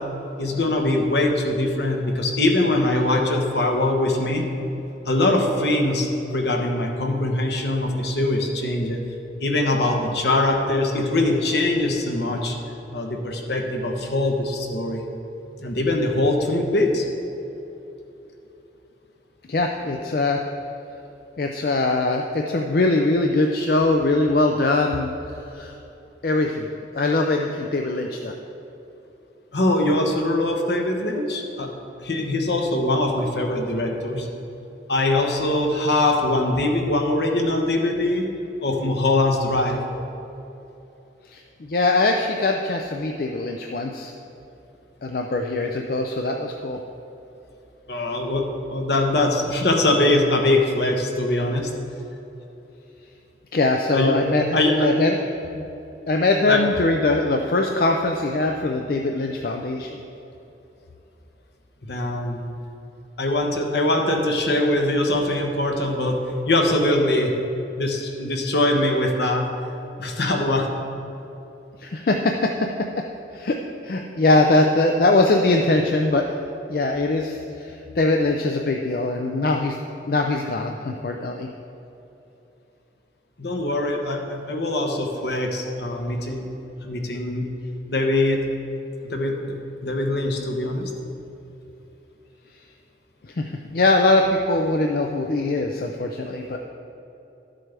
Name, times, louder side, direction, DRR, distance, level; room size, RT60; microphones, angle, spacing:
voice 1, 0.4-4.4 5.0-9.0 9.4-12.5 12.9-15.1 15.6-17.1 29.5-31.7 32.0-34.3 34.9-38.2 38.6-39.8 47.9-51.7 53.9-54.1 54.5-54.9 56.5-56.6 61.8-62.5 63.2-66.2 66.5-67.3 67.8-69.4 70.0-70.7 83.4-86.5 86.8-87.5 87.9-88.4 89.0-89.6 89.8-90.9, left 2 dB, 70° left, 2 dB, 1.1 m, -22 dB
voice 2, 19.5-20.4 21.4-25.1 25.5-25.7 26.2-26.7 26.9-28.3 41.3-44.1 45.0-46.8 53.5-55.2 55.5-55.7 56.1-60.0 71.8-72.7 73.3-73.6 73.8-76.3 76.7-79.8 80.1-81.5 93.4-96.6, left 2 dB, 55° left, 3 dB, 0.4 m, -22 dB
12.5 x 7.6 x 3.4 m, 2.9 s
head